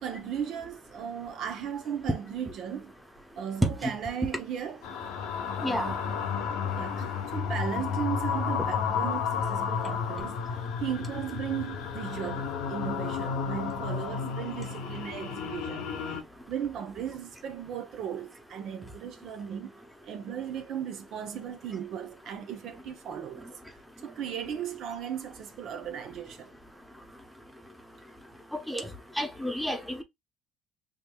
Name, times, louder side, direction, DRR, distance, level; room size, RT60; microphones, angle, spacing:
voice 1, 0.0-2.9 3.4-5.0 5.7-6.1 6.8-10.4 10.8-16.1 16.5-19.7 20.0-23.5 24.0-26.5, right 8 dB, 60° right, 0.7 m, -36 dB
sound 1, 4.8-16.2, left 6 dB, 85° left, 0.8 m, -32 dB
voice 2, 5.6-5.9 28.7-28.9 29.2-30.0, equal, ahead, 0.9 m, -31 dB
5.1 x 2.8 x 2.2 m
cardioid pair, 105°, 0 cm